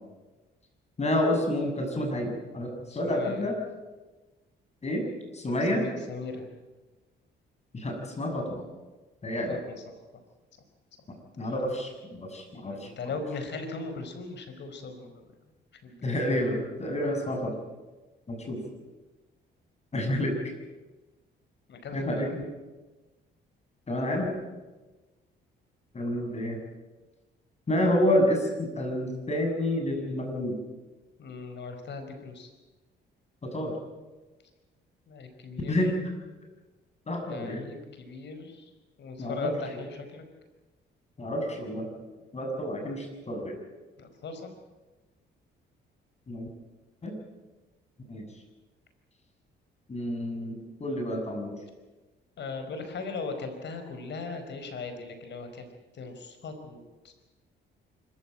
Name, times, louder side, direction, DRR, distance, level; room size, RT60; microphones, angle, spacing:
voice 1, 1.0-3.6 4.8-5.0 5.3-5.8 7.7-8.7 9.2-9.6 11.4-13.1 16.0-17.6 18.3-18.6 19.9-20.4 21.9-22.5 23.9-24.3 25.9-26.6 27.7-30.6 33.4-33.7 35.7-35.9 37.1-37.6 39.2-39.5 41.2-41.9 42.3-43.6 46.3-46.5 47.0-47.2 48.1-48.3 49.9-51.6, left 1 dB, 35° left, 3 dB, 6.9 m, -29 dB
voice 2, 2.9-3.4 5.7-6.5 9.5-9.8 12.6-15.2 15.8-16.0 21.7-22.3 31.2-32.5 35.1-35.8 37.2-38.6 39.0-40.2 44.0-44.5 52.4-55.7 55.9-57.1, left 4 dB, 60° left, 7 dB, 4.7 m, -39 dB
25.0 x 15.0 x 9.0 m, 1.2 s
cardioid pair, 90°, 20 cm